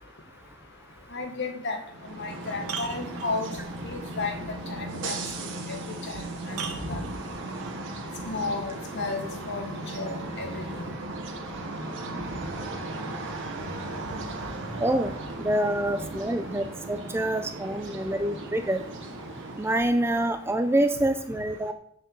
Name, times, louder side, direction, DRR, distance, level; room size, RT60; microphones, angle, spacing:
voice 1, 1.1-1.8 2.2-3.5 3.8-4.3 4.7-5.1 6.1-6.6 6.9-7.0 8.2-10.9, left 3 dB, 50° left, 5 dB, 1.6 m, -33 dB
sound 1, 1.6-1.7 2.2-3.7 5.7-5.8 6.5-7.8 9.2-9.3, right 6 dB, 80° right, 1.6 m, -38 dB
sound 2, 1.9-20.0, right 2 dB, 55° right, 1.6 m, -36 dB
voice 2, 15.4-18.8 19.6-21.7, right 1 dB, 10° right, 8 dB, 0.5 m, -26 dB
7.0 x 6.7 x 7.4 m, 0.69 s
head